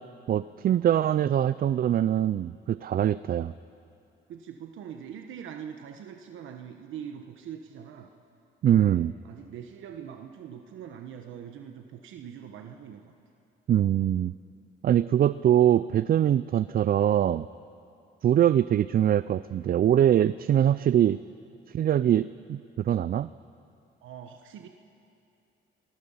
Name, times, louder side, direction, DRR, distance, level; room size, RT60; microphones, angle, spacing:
voice 1, 0.3-3.5 8.6-9.1 13.7-14.3 14.8-17.5 18.2-21.2 21.7-23.3, right 10 dB, 50° right, 16 dB, 0.4 m, -23 dB
voice 2, 4.3-8.1 8.6-13.1 24.0-24.7, right 8 dB, 80° right, 4 dB, 1.2 m, -43 dB
27.5 x 20.5 x 5.6 m, 2.6 s
cardioid pair, 90°, 20 cm